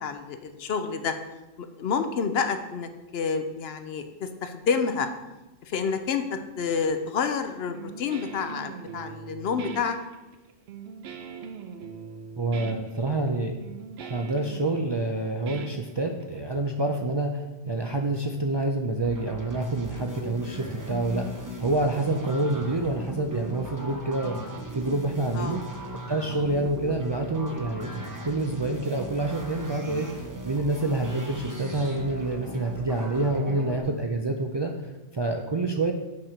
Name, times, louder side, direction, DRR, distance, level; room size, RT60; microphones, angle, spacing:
voice 1, 0.0-1.1 1.6-5.1 5.6-6.2 6.6-10.0 25.4-25.6, left 6 dB, 75° left, 8 dB, 0.9 m, -29 dB
Guitar, 7.7-16.4, right 6 dB, 80° right, 0.9 m, -41 dB
voice 2, 12.4-13.5 14.0-25.6 26.1-35.9, right 2 dB, 40° right, 2 dB, 0.4 m, -27 dB
sound 1, 19.0-33.8, right 1 dB, 20° right, 0.8 m, -38 dB
7.5 x 4.4 x 5.0 m, 1.1 s
omnidirectional pair, 1.1 m